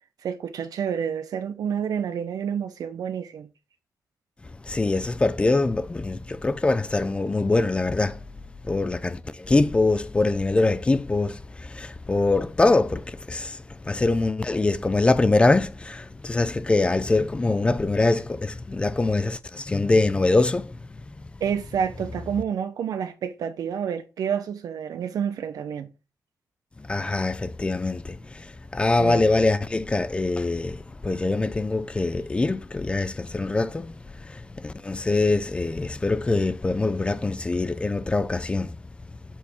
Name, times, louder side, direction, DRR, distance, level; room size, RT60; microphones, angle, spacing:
voice 1, 0.2-3.5 21.4-25.9 29.0-29.4, right 8 dB, 70° right, 0.5 m, -29 dB
voice 2, 4.6-8.2 8.6-21.1 26.8-38.8, left 2 dB, 15° left, 0.4 m, -24 dB
7.2 x 3.5 x 4.4 m
wide cardioid pair, 175°, 7 cm